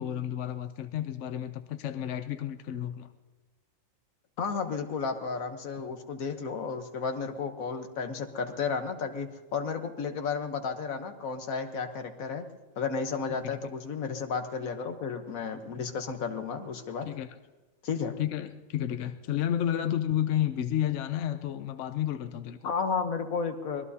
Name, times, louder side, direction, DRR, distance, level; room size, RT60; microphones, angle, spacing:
voice 1, 0.0-3.1 13.3-13.6 17.1-17.3 18.2-22.7, left 11 dB, 70° left, 10 dB, 1.0 m, -31 dB
voice 2, 4.4-12.4 12.8-17.1 17.8-18.2 22.6-23.9, left 5 dB, 85° left, 6 dB, 1.5 m, -33 dB
24.5 x 20.0 x 2.8 m, 1.2 s
omnidirectional pair, 1.4 m